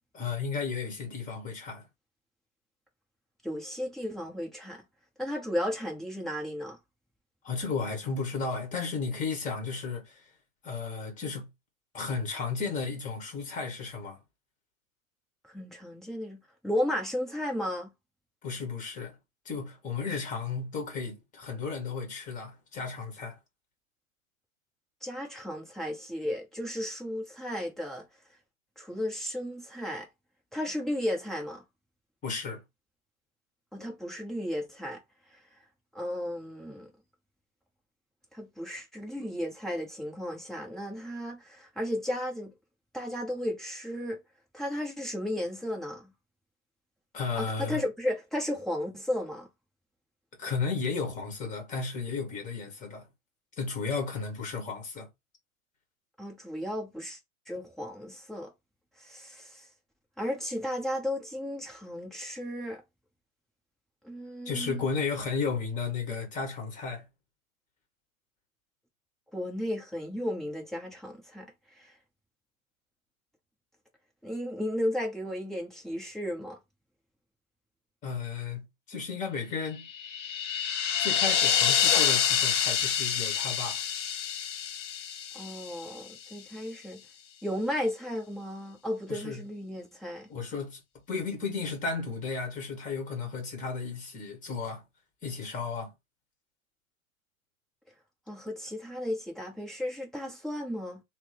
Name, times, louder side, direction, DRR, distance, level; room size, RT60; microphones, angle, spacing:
voice 1, 0.1-1.8 7.4-10.2 10.6-11.5 11.9-14.2 18.4-19.2 19.4-23.4 32.2-32.6 47.1-47.8 50.4-53.1 53.6-55.1 64.4-67.0 78.0-79.9 81.0-83.8 89.1-89.4 90.3-90.8 91.1-94.8 95.2-95.9, left 5 dB, 20° left, 1.1 m, -34 dB
voice 2, 3.4-4.8 5.2-6.8 15.5-17.9 25.0-28.0 28.8-30.1 30.5-31.6 33.7-35.0 35.9-36.9 38.3-42.5 42.9-44.2 44.5-46.1 47.4-49.5 56.2-57.2 57.5-58.5 59.0-59.7 60.2-62.8 64.0-64.8 69.3-71.9 74.2-76.6 85.3-87.0 87.4-90.3 98.3-101.0, left 1 dB, ahead, 0.6 m, -34 dB
sound 1, 79.9-86.1, left 8 dB, 60° left, 0.6 m, -27 dB
2.9 x 2.0 x 4.0 m
figure-of-eight pair, 110°, 42 cm